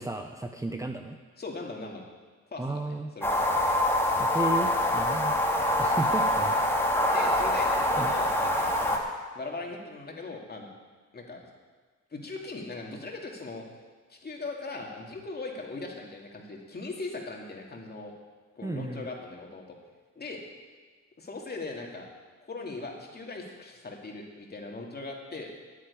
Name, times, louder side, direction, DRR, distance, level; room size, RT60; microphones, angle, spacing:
voice 1, 0.0-1.2 2.6-3.1 4.2-5.3 5.8-6.6 8.0-8.1 18.6-19.1, right 2 dB, 10° right, 4 dB, 0.7 m, -33 dB
voice 2, 1.4-2.1 2.5-3.5 7.1-9.0 9.3-10.7 11.1-11.5 12.1-13.6 14.1-18.1 18.6-19.8 20.2-20.4 21.2-22.1 22.4-25.5, left 3 dB, 35° left, 0 dB, 2.6 m, -39 dB
sound 1, 3.2-9.0, left 1 dB, 10° left, 2.3 m, -25 dB
9.7 x 9.6 x 8.6 m, 1.4 s
cardioid pair, 90°, 30 cm